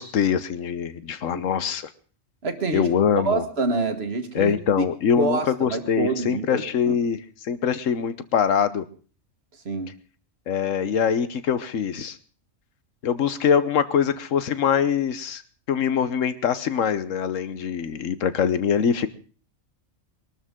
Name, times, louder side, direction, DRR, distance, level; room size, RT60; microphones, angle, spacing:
voice 1, 0.0-1.9 2.7-3.4 4.3-8.8 10.5-12.2 13.0-15.4 15.7-19.1, left 7 dB, 70° left, 13 dB, 1.3 m, -23 dB
voice 2, 2.4-4.8 5.1-6.9 9.6-9.9, right 3 dB, 50° right, 7 dB, 1.7 m, -27 dB
22.0 x 12.5 x 3.7 m, 0.39 s
omnidirectional pair, 1.4 m